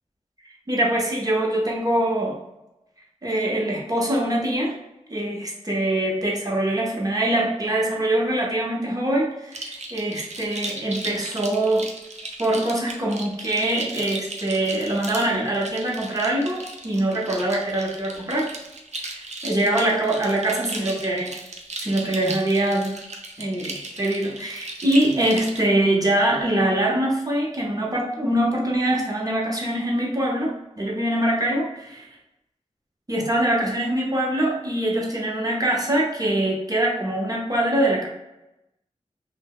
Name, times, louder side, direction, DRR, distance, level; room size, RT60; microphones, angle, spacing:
voice 1, 0.7-2.4 3.2-4.8 5.1-11.9 12.4-18.5 19.0-21.4 21.8-22.9 23.4-32.1 33.1-38.1, right 1 dB, 30° right, -2 dB, 0.8 m, -23 dB
sound 1, 9.5-25.6, right 2 dB, 70° right, 0.5 m, -36 dB
2.8 x 2.1 x 3.6 m, 0.93 s
wide cardioid pair, 60°, 12 cm